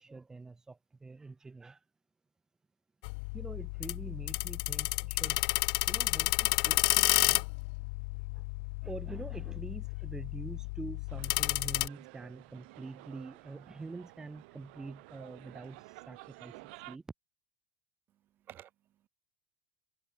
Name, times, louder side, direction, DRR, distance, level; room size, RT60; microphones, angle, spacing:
voice 1, 0.0-1.8 3.3-5.4 5.9-7.4 8.3-8.4 8.8-17.0, right 3 dB, 10° right, 1.1 m, -46 dB
sound 1, 3.0-11.9, left 32 dB, 65° left, 0.6 m, -31 dB
sound 2, 11.1-17.0, right 28 dB, 65° right, 2.1 m, -52 dB
voice 2, 18.1-19.1, right 12 dB, 35° right, 1.8 m, -54 dB
supercardioid pair, 155°, 6 cm